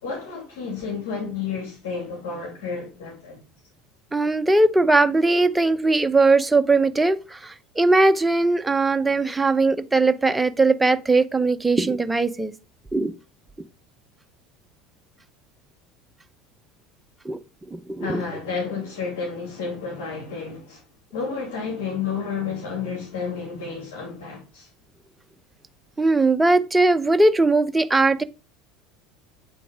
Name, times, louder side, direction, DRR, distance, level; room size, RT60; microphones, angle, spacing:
voice 1, 0.0-3.4 18.0-20.8 21.1-24.7, left 5 dB, 85° left, 2.6 m, -31 dB
voice 2, 4.1-12.5 12.9-13.1 17.2-17.4 17.7-18.2 26.0-28.2, right 3 dB, 10° right, 0.7 m, -19 dB
8.6 x 3.8 x 5.0 m
supercardioid pair, 110°, 0 cm